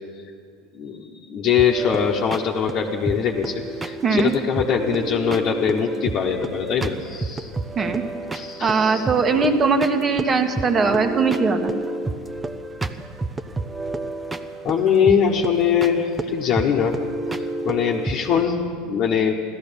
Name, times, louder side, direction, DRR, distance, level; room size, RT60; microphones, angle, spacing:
voice 1, 0.7-7.5 8.3-9.0 14.6-17.0 17.6-19.3, left 7 dB, 45° left, -2 dB, 1.2 m, -22 dB
sound 1, 1.6-18.4, right 2 dB, 15° right, 0.9 m, -30 dB
voice 2, 4.0-4.3 7.7-8.0 8.6-11.7, right 4 dB, 30° right, 6 dB, 1.5 m, -20 dB
15.0 x 13.5 x 7.1 m, 2.1 s
hypercardioid pair, 90°, 0 cm